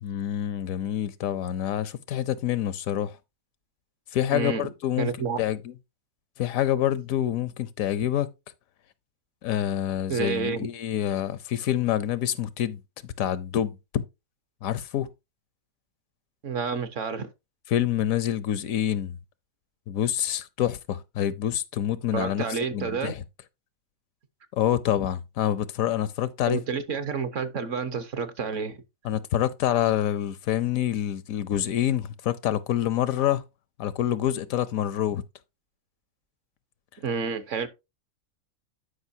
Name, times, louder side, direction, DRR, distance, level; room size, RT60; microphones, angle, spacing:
voice 1, 0.0-3.1 4.1-5.1 5.4-5.7 6.4-8.3 9.4-12.8 13.2-14.0 14.6-15.1 17.7-19.2 19.9-22.5 22.7-23.2 24.6-26.6 29.0-33.4 33.8-35.2, left 11 dB, 80° left, 1.1 m, -27 dB
voice 2, 4.3-4.7 5.0-5.4 10.1-10.7 16.4-17.3 22.1-23.1 26.5-28.8 37.0-37.7, right 5 dB, 65° right, 1.3 m, -29 dB
12.0 x 5.2 x 2.7 m
omnidirectional pair, 1.4 m